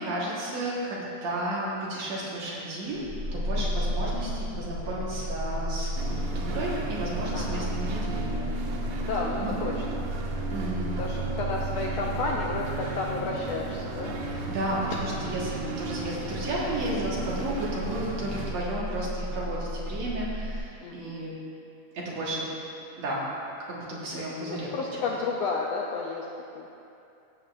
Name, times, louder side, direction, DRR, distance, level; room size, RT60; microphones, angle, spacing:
voice 1, 0.0-3.0 3.3-8.7 9.4-9.5 10.5-11.0 14.2-21.4 21.9-22.5 23.0-23.3 23.7-24.7 25.0-25.1, right 1 dB, 65° right, -6 dB, 2.5 m, -33 dB
sound 1, 2.9-20.6, equal, 55° left, 2.9 m, -34 dB
voice 2, 3.6-3.9 7.3-7.7 9.0-14.3 20.8-21.2 24.1-26.3 26.5-26.7, left 4 dB, 75° left, -2 dB, 1.6 m, -33 dB
sound 2, 6.0-18.5, right 4 dB, 85° right, 2.3 m, -35 dB
15.0 x 7.8 x 2.5 m, 2.6 s
omnidirectional pair, 3.5 m